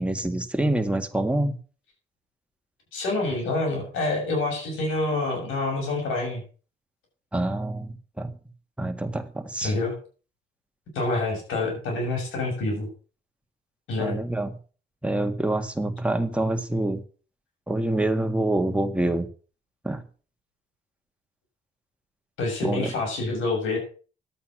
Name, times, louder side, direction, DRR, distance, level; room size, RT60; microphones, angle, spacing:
voice 1, 0.0-1.6 7.3-8.3 8.8-9.7 14.0-14.5 15.0-17.0 17.7-19.3 19.8-20.0 22.6-22.9, right 1 dB, 5° right, 5 dB, 1.8 m, -26 dB
voice 2, 2.9-6.4 9.6-9.9 11.0-12.9 13.9-14.2 22.4-23.8, left 2 dB, 85° left, 0 dB, 6.9 m, -27 dB
12.0 x 8.6 x 6.2 m, 0.39 s
cardioid pair, 90°, 20 cm